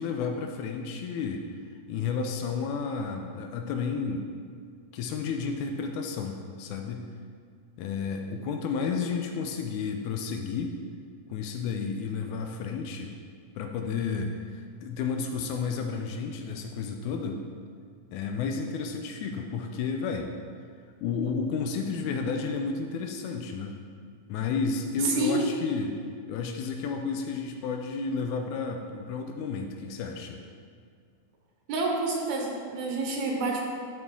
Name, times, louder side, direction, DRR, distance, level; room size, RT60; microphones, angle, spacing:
voice 1, 0.0-1.6 1.9-4.3 4.9-7.1 7.8-10.8 11.3-13.1 13.6-17.5 18.1-20.3 21.0-23.8 24.3-26.0 26.3-30.4, left 5 dB, 80° left, 4 dB, 1.8 m, -31 dB
voice 2, 25.0-25.4 31.7-33.6, right 3 dB, 70° right, 0 dB, 2.1 m, -28 dB
11.5 x 4.2 x 3.6 m, 2.1 s
omnidirectional pair, 3.6 m